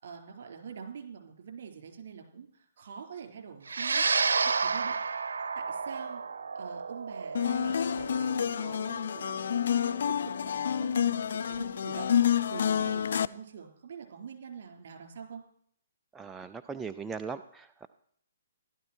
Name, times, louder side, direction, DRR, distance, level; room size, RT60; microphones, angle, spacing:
voice 1, 0.0-5.0 5.5-6.2 6.5-10.0 10.2-15.4, right 6 dB, 60° right, 4 dB, 4.3 m, -45 dB
sound 1, 3.7-12.2, right 5 dB, 80° right, 0.9 m, -32 dB
sound 2, 7.3-13.3, left 8 dB, 65° left, 0.5 m, -28 dB
voice 2, 16.1-17.9, right 5 dB, 10° right, 8 dB, 0.4 m, -39 dB
15.5 x 12.5 x 4.5 m, 0.63 s
hypercardioid pair, 145°, 0 cm